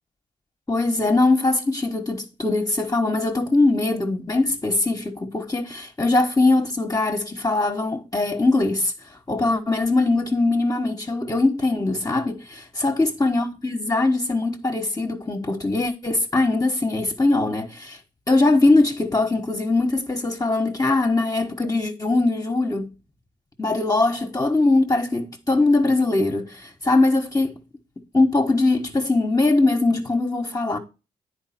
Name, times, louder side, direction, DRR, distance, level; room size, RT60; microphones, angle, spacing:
voice 1, 0.7-8.9 9.3-18.0 18.3-22.9 23.6-27.6 28.1-30.8, left 2 dB, 20° left, 1.4 m, -21 dB
9.5 x 4.9 x 4.3 m
supercardioid pair, 50°, 17 cm